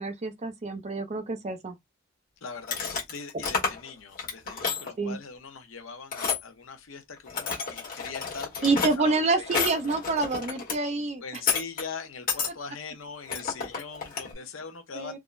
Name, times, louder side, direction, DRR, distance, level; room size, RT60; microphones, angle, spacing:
voice 1, 0.0-1.7 5.0-5.2 8.6-11.2 14.9-15.2, right 3 dB, 35° right, 0.5 m, -27 dB
voice 2, 2.4-9.5 11.2-15.2, left 5 dB, 85° left, 0.7 m, -41 dB
sound 1, 2.6-3.9 4.2-4.9 6.1-6.4 7.2-10.8 11.3-11.8 12.3-12.5 13.3-14.3, left 5 dB, 45° left, 1.1 m, -30 dB
3.6 x 2.0 x 2.4 m
head